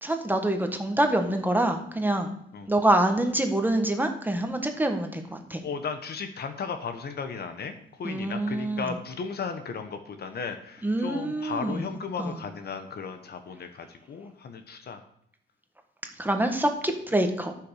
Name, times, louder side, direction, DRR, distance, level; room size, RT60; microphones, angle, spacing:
voice 1, 0.0-2.4 2.7-5.6 8.0-8.9 10.8-11.9 12.2-12.4 16.2-17.5, right 1 dB, 10° right, 5 dB, 1.5 m, -26 dB
voice 2, 5.6-15.0, left 5 dB, 55° left, 7 dB, 1.2 m, -35 dB
9.9 x 5.9 x 6.6 m, 0.70 s
cardioid pair, 90°, 20 cm